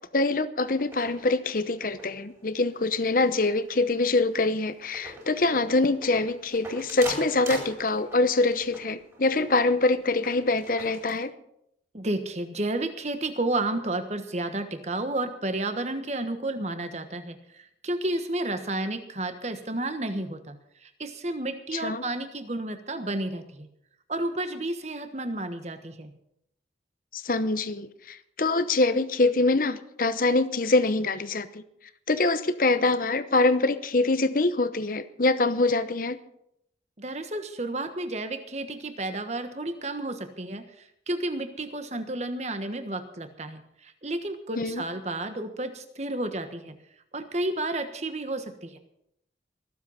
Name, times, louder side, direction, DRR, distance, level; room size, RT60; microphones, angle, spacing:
voice 1, 0.1-11.3 21.7-22.0 27.1-31.6 32.1-36.2 44.6-44.8, left 2 dB, 50° left, 12 dB, 0.9 m, -24 dB
sound 1, 0.6-11.2, right 1 dB, 15° right, 4.2 m, -43 dB
voice 2, 11.9-23.7 24.1-26.1 37.0-46.7 47.1-48.8, right 2 dB, 35° right, 8 dB, 1.3 m, -31 dB
23.0 x 7.7 x 5.7 m, 0.78 s
head